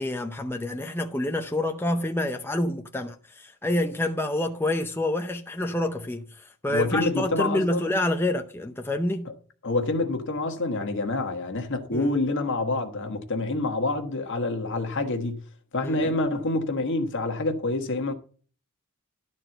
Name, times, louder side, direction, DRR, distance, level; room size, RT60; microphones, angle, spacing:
voice 1, 0.0-9.3 11.9-12.2 15.8-16.2, left 1 dB, 10° left, 0.6 m, -28 dB
voice 2, 6.7-7.9 9.6-15.4 15.7-18.1, left 2 dB, 55° left, 1.5 m, -27 dB
12.0 x 4.4 x 7.8 m
head